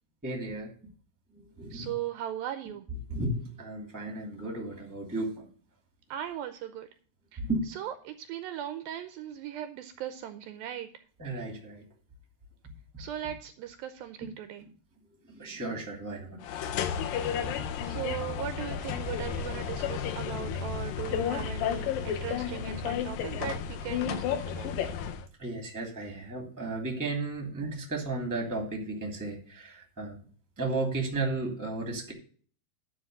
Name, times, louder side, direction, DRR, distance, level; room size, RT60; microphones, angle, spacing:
voice 1, 0.2-0.7 1.3-1.9 3.1-5.5 7.4-7.8 11.2-11.8 15.3-16.4 25.4-30.2 30.6-32.1, right 2 dB, 5° right, 2 dB, 1.8 m, -34 dB
voice 2, 1.7-2.9 6.1-6.9 7.3-7.4 7.8-10.9 13.0-14.6 17.5-24.7, right 10 dB, 80° right, 9 dB, 2.3 m, -38 dB
sound 1, 16.4-25.3, left 8 dB, 75° left, 2.3 m, -32 dB
11.5 x 4.8 x 6.5 m, 0.43 s
omnidirectional pair, 4.5 m